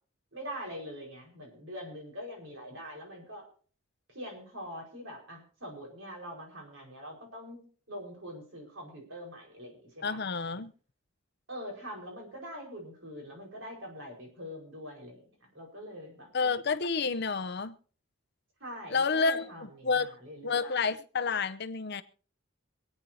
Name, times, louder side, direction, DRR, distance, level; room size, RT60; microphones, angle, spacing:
voice 1, 0.3-3.4 4.1-10.2 11.5-15.2 15.5-16.3 18.6-20.7, equal, 60° right, 4.9 m, -43 dB
voice 2, 10.0-10.7 16.3-17.8 18.9-19.5 19.8-20.1 20.4-22.0, left 4 dB, 50° left, 0.7 m, -29 dB
26.5 x 9.3 x 2.8 m
head